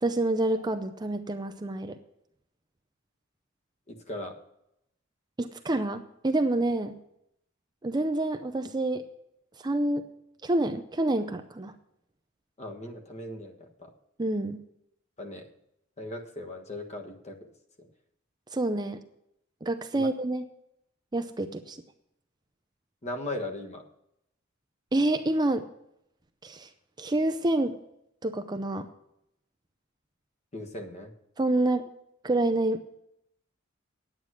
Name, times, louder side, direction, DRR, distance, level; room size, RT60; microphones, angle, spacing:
voice 1, 0.0-2.0 5.4-7.0 7.8-9.0 9.6-10.1 10.4-11.7 14.2-14.6 18.5-19.0 19.6-20.5 21.1-21.8 24.9-25.7 26.4-26.7 27.0-27.8 28.2-28.9 31.4-31.9 32.2-32.8, right 2 dB, 20° right, 7 dB, 0.5 m, -27 dB
voice 2, 3.9-4.4 12.6-13.9 15.2-15.5 16.0-17.4 17.8-17.9 19.9-20.1 23.0-23.8 30.5-31.1, left 1 dB, 35° left, 5 dB, 1.5 m, -38 dB
9.7 x 9.1 x 6.2 m, 0.79 s
head